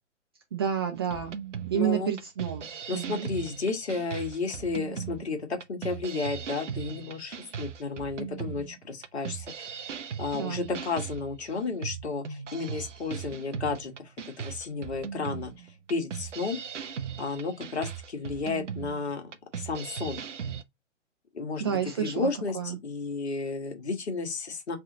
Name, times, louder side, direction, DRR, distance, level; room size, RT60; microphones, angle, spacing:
voice 1, 0.5-1.4 1.7-2.7 2.9-3.3 10.3-10.7 21.6-22.3 22.5-22.8, right 8 dB, 20° right, 0.4 m, -29 dB
sound 1, 1.1-20.6, right 7 dB, 75° right, 0.7 m, -38 dB
voice 2, 1.7-2.1 2.9-9.7 10.2-15.5 15.9-16.6 17.2-20.2 21.3-24.8, left 4 dB, 60° left, 1.3 m, -33 dB
3.6 x 3.3 x 3.8 m
figure-of-eight pair, 120°, 37 cm